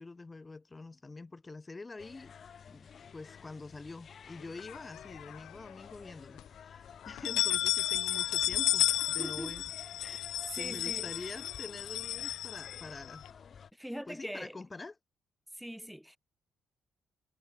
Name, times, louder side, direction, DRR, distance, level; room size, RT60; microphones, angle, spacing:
voice 1, 0.0-2.3 2.6-9.6 10.0-10.3 10.5-13.3 14.1-15.0, left 3 dB, 25° left, 2.0 m, -46 dB
sound 1, 2.0-13.7, left 7 dB, 50° left, 5.9 m, -52 dB
sound 2, 4.6-5.5 5.9-6.0 6.4-6.5 7.0-13.3, left 14 dB, 85° left, 0.4 m, -33 dB
voice 2, 9.2-9.6 10.0-11.3 13.7-14.6 15.5-16.2, equal, ahead, 1.8 m, -42 dB
cardioid pair, 90°, 0 cm